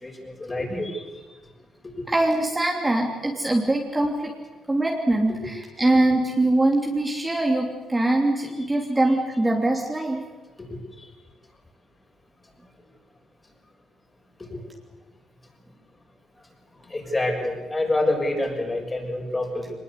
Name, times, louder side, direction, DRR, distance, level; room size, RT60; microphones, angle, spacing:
voice 1, 0.0-1.0 5.4-5.5 10.7-10.8 16.9-19.7, left 2 dB, 20° left, 1 dB, 6.5 m, -27 dB
voice 2, 2.1-4.3 4.7-10.2, right 2 dB, 15° right, 0 dB, 3.0 m, -22 dB
22.5 x 20.5 x 8.4 m, 1.3 s
cardioid pair, 90°, 0 cm